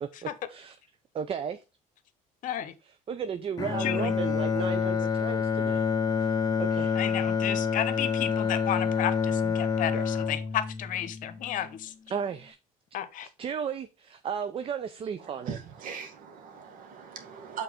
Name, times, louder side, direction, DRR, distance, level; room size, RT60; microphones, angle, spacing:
voice 1, 0.0-0.8 1.1-1.6 3.1-5.8 6.2-7.0 9.9-10.1 12.1-12.6 13.2-15.6, right 7 dB, 40° right, 0.5 m, -34 dB
voice 2, 2.4-2.7 3.8-4.1 6.9-11.9 12.9-13.3, left 10 dB, 60° left, 0.9 m, -32 dB
Bowed string instrument, 3.6-11.8, left 6 dB, 25° left, 0.8 m, -28 dB
voice 3, 15.2-17.6, right 7 dB, 65° right, 1.8 m, -40 dB
5.9 x 4.0 x 5.0 m
cardioid pair, 100°, 15 cm